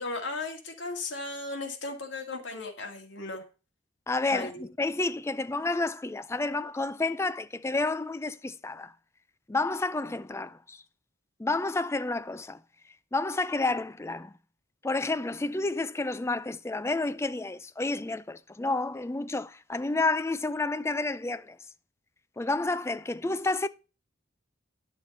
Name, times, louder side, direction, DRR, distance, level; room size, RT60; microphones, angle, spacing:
voice 1, 0.0-3.4 4.3-4.6, left 3 dB, 70° left, 2.1 m, -36 dB
voice 2, 4.1-8.9 9.5-10.8 11.4-12.6 13.1-14.4 14.8-21.6 22.4-23.7, left 2 dB, 15° left, 0.4 m, -30 dB
10.5 x 6.9 x 4.2 m
head